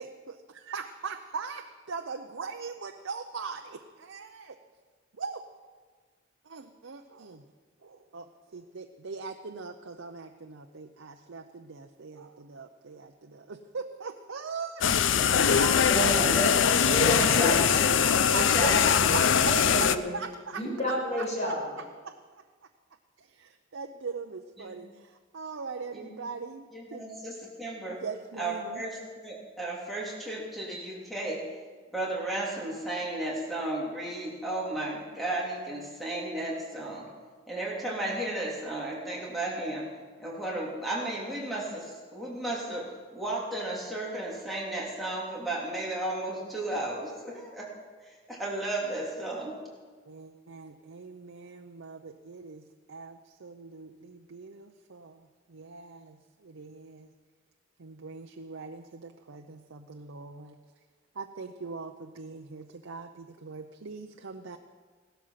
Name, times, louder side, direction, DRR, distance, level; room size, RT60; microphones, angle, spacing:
voice 1, 0.7-4.6 5.1-5.4 6.4-7.4 7.8-14.9 15.2-16.1 18.0-18.7 19.1-20.6 21.2-21.5 22.0-22.1 23.2-27.2 27.9-28.9 50.0-57.1 57.8-60.6 61.1-64.6, right 4 dB, 75° right, 5 dB, 0.7 m, -41 dB
sound 1, 14.8-20.0, left 7 dB, 70° left, 0.6 m, -22 dB
voice 2, 15.8-16.6 16.9-19.2 19.5-20.1 20.6-21.6, equal, 35° left, -3 dB, 5.3 m, -30 dB
voice 3, 26.7-28.0 28.4-31.4 31.9-37.1 37.5-39.8 40.2-47.7 48.1-49.5, right 2 dB, ahead, -4 dB, 3.1 m, -34 dB
16.5 x 12.5 x 5.8 m, 1.5 s
head